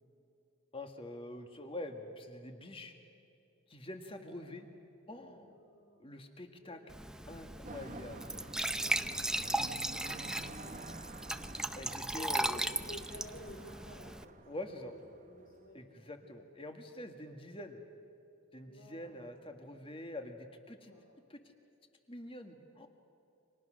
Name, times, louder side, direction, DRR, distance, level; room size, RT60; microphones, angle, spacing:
voice 1, 0.7-2.9 3.7-4.7 5.1-5.6 6.0-6.8 7.3-8.3 9.1-10.2 11.8-12.6 14.5-14.9 15.7-17.8 18.5-20.9 21.3-21.5 22.1-22.9, left 1 dB, 25° left, 5 dB, 1.8 m, -46 dB
voice 2, 4.1-4.7 5.5-7.1 8.7-9.6 10.3-10.9 12.0-12.5 12.9-14.4 14.7-16.0 18.6-19.8 20.7-21.1, left 1 dB, 65° left, 0 dB, 2.9 m, -55 dB
Glass / Trickle dribble / Fill (with liquid), 6.9-14.2, right 1 dB, 5° right, 0.5 m, -37 dB
sound 1, 7.6-15.7, right 2 dB, 40° right, 0.9 m, -50 dB
30.0 x 25.5 x 6.4 m, 2.7 s
head